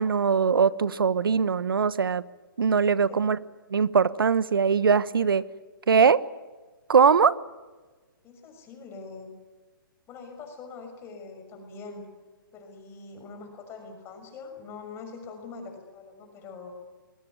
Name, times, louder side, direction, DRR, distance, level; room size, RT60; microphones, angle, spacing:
voice 1, 0.0-2.2 2.6-3.4 3.7-5.4 5.9-6.2 6.9-7.4, right 6 dB, 80° right, 17 dB, 1.2 m, -21 dB
voice 2, 2.9-3.3 8.2-9.3 10.1-12.1 12.5-16.7, left 4 dB, 20° left, 5 dB, 6.4 m, -43 dB
23.5 x 21.0 x 9.6 m, 1.3 s
hypercardioid pair, 140°, 12 cm